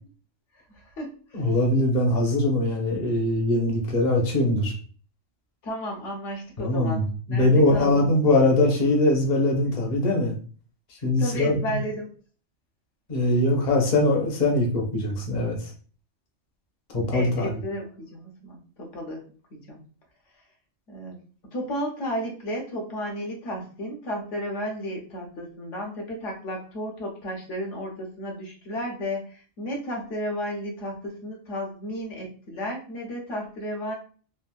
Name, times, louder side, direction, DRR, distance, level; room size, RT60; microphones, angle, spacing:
voice 1, 0.7-1.5 5.6-8.1 11.2-12.1 17.1-19.2 19.5-19.8 20.9-21.2 21.5-33.9, equal, 75° left, 0 dB, 1.2 m, -33 dB
voice 2, 1.3-4.7 6.6-10.3 11.0-11.8 13.1-15.7 16.9-17.5, left 2 dB, 40° left, 0 dB, 0.8 m, -22 dB
3.5 x 2.5 x 2.2 m, 0.41 s
omnidirectional pair, 1.3 m